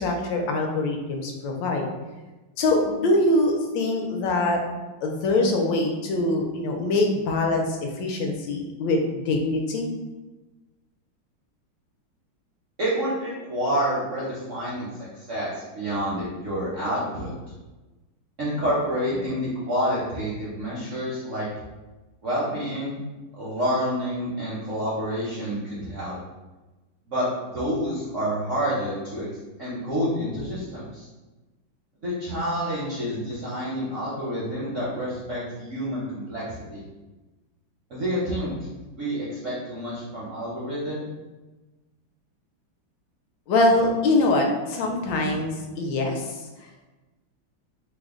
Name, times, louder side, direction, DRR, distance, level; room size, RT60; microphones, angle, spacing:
voice 1, 0.0-1.8 2.6-4.6 5.0-9.9 43.5-46.2, left 2 dB, 75° left, 2 dB, 1.2 m, -23 dB
voice 2, 12.8-14.9 15.3-17.3 18.4-21.5 22.2-23.0 23.4-26.1 27.1-27.2 27.5-29.3 29.6-31.1 32.0-36.4 36.7-36.8 37.9-38.5 38.9-41.1, equal, 70° right, -8 dB, 0.7 m, -28 dB
3.2 x 2.1 x 3.5 m, 1.1 s
omnidirectional pair, 2.2 m